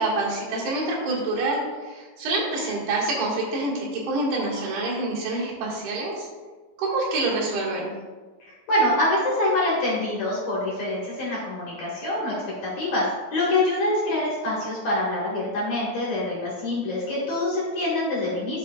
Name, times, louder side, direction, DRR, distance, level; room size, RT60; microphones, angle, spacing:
voice 1, 0.0-6.3 6.8-7.9, right 2 dB, 70° right, -5 dB, 3.7 m, -26 dB
voice 2, 8.4-12.4 12.6-18.6, left 1 dB, 55° left, -6 dB, 2.5 m, -25 dB
12.5 x 5.8 x 2.3 m, 1.4 s
omnidirectional pair, 4.8 m